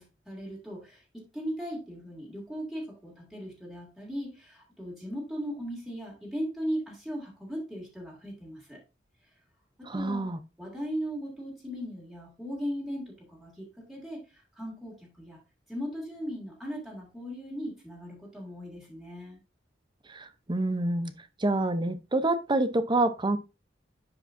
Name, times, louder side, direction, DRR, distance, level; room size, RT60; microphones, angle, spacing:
voice 1, 0.0-8.8 9.8-10.2 10.6-15.4 15.7-19.4, equal, ahead, 2.5 m, -38 dB
voice 2, 9.9-10.4 20.1-21.1 21.4-23.4, right 2 dB, 25° right, 0.8 m, -27 dB
10.0 x 5.0 x 2.7 m
head